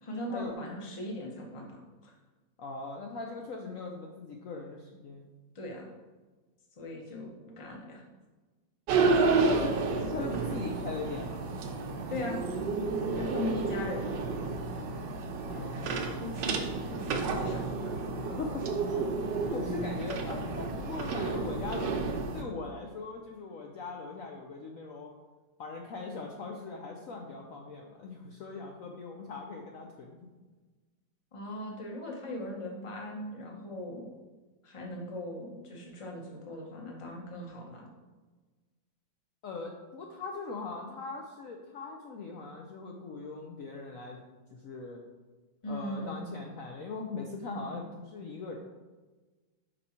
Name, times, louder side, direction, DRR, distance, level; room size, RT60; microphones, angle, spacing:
voice 1, 0.0-2.1 5.5-5.9 6.8-8.0 9.0-9.1 12.1-12.4 13.1-14.2 16.2-16.6 16.9-18.1 31.3-34.1 34.6-37.9 45.6-46.3 47.5-47.8, left 1 dB, 25° left, 0 dB, 0.7 m, -39 dB
voice 2, 2.6-5.3 9.1-9.8 10.1-11.4 13.0-13.3 15.5-15.9 18.2-19.1 19.5-22.1 22.3-25.1 25.6-30.3 39.4-44.2 44.5-45.0 45.7-48.6, left 4 dB, 70° left, 1 dB, 0.8 m, -40 dB
sound 1, 8.9-22.4, right 4 dB, 75° right, 1.3 m, -31 dB
5.2 x 4.7 x 4.3 m, 1.3 s
omnidirectional pair, 2.0 m